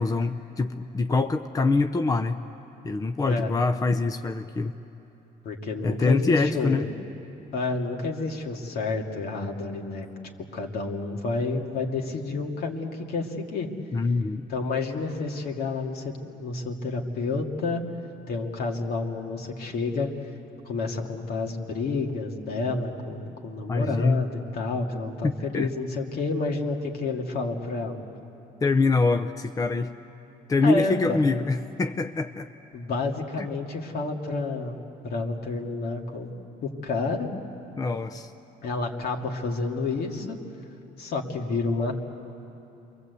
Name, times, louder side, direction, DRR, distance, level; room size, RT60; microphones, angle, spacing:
voice 1, 0.0-2.4 2.8-4.7 5.8-6.9 13.9-14.5 23.7-24.2 25.2-25.7 28.6-29.9 30.5-32.5 33.4-33.5 37.7-38.3, left 3 dB, 20° left, 8 dB, 0.6 m, -24 dB
voice 2, 5.4-6.9 7.5-10.1 10.5-13.7 14.5-17.8 18.3-20.1 20.6-28.0 30.6-31.2 32.7-34.8 35.0-36.3 36.6-37.3 38.6-40.4 41.0-42.2, left 3 dB, 65° left, 1 dB, 2.5 m, -29 dB
28.5 x 22.5 x 8.3 m, 3.0 s
cardioid pair, 110°, 17 cm